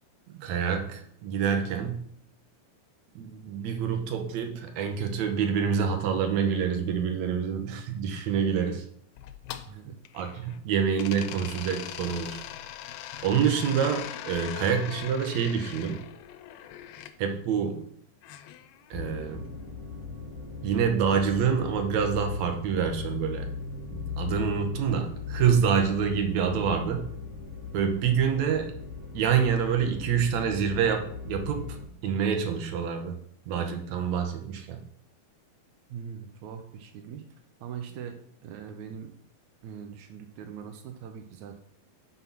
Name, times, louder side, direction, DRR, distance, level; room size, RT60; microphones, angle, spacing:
voice 1, 0.4-2.1 3.2-8.8 10.1-12.4 13.2-16.0 17.2-17.9 18.9-19.5 20.6-23.5 23.9-27.1 27.7-28.7 29.1-31.8 32.0-33.1 33.5-34.8, right 7 dB, 70° right, 5 dB, 1.8 m, -27 dB
sound 1, 9.2-10.6 11.0-17.1 18.2-19.4, left 11 dB, 90° left, 2.5 m, -41 dB
voice 2, 9.7-10.0 13.5-13.7 35.9-37.2 37.6-38.1 38.4-39.1 39.6-41.6, right 8 dB, 85° right, 5 dB, 1.6 m, -41 dB
sound 2, 18.9-31.8, left 5 dB, 10° right, 0.9 m, -38 dB
6.1 x 5.5 x 5.9 m, 0.65 s
omnidirectional pair, 4.3 m